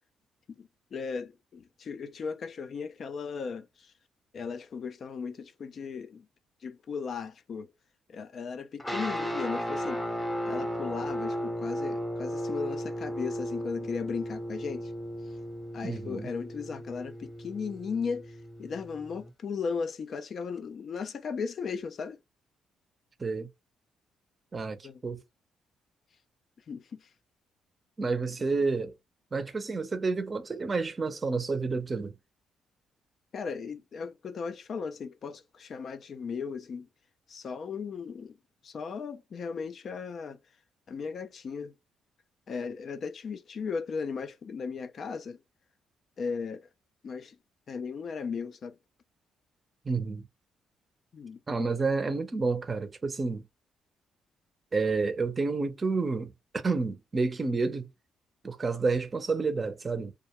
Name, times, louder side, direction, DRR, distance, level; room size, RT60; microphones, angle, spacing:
voice 1, 0.5-3.9 4.3-6.3 6.6-7.7 8.1-10.0 10.5-14.9 15.7-22.2 24.8-25.0 26.7-27.1 33.3-36.9 37.3-38.4 38.6-40.4 40.9-41.7 42.5-45.4 46.2-46.7 47.0-47.4 47.7-48.8 51.1-51.4, left 5 dB, 55° left, 0.3 m, -36 dB
sound 1, 8.8-19.3, equal, 5° left, 0.7 m, -35 dB
voice 2, 15.8-16.3 23.2-23.5 24.5-24.8 25.0-25.2 28.0-28.9 29.3-32.1 49.8-50.2 51.5-53.4 54.7-57.9 58.4-60.1, right 4 dB, 30° right, 0.5 m, -29 dB
2.3 x 2.1 x 2.8 m
cardioid pair, 90°, 0 cm